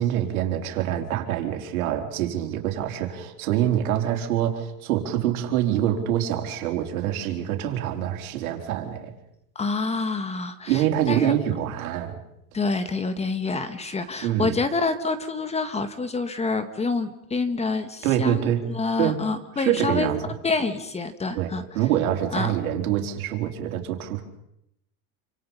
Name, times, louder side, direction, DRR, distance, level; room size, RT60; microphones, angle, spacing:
voice 1, 0.0-9.1 10.7-12.2 14.2-14.6 18.0-18.6 19.0-19.2 19.6-20.2 21.3-24.2, right 11 dB, 80° right, 3 dB, 4.4 m, -25 dB
voice 2, 9.6-11.3 12.5-20.1 20.4-21.6 22.3-22.5, left 3 dB, 15° left, 10 dB, 1.8 m, -27 dB
28.0 x 26.5 x 5.7 m, 0.77 s
supercardioid pair, 140°, 42 cm